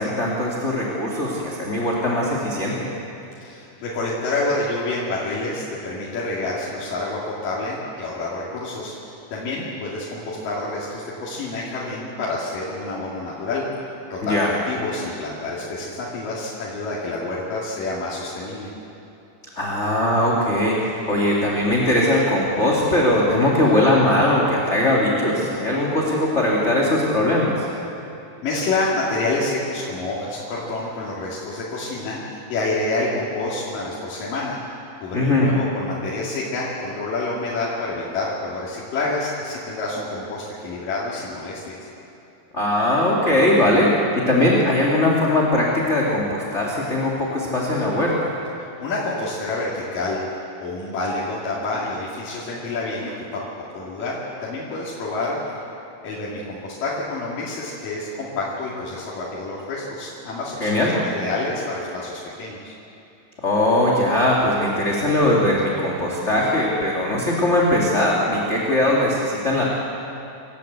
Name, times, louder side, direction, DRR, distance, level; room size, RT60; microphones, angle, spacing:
voice 1, 0.0-2.7 14.2-14.5 19.5-27.7 35.1-35.5 42.5-48.3 60.6-60.9 63.4-69.6, left 1 dB, 25° left, -3 dB, 2.4 m, -20 dB
voice 2, 3.4-13.7 14.1-18.7 28.4-34.6 35.0-41.6 48.6-50.2 50.6-53.4 53.7-55.6 56.0-62.7, left 2 dB, 85° left, -7 dB, 4.1 m, -28 dB
27.0 x 13.5 x 8.2 m, 2.9 s
omnidirectional pair, 3.8 m